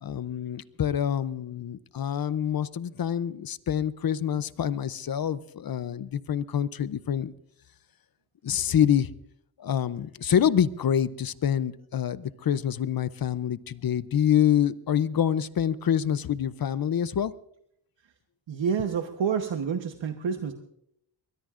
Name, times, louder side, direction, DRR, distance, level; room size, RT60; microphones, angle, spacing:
voice 1, 0.0-7.3 8.4-9.1 9.6-17.3, left 9 dB, 55° left, 16 dB, 0.5 m, -26 dB
voice 2, 18.5-20.5, right 7 dB, 80° right, 5 dB, 1.1 m, -28 dB
23.0 x 20.5 x 2.5 m, 0.73 s
wide cardioid pair, 170°, 44 cm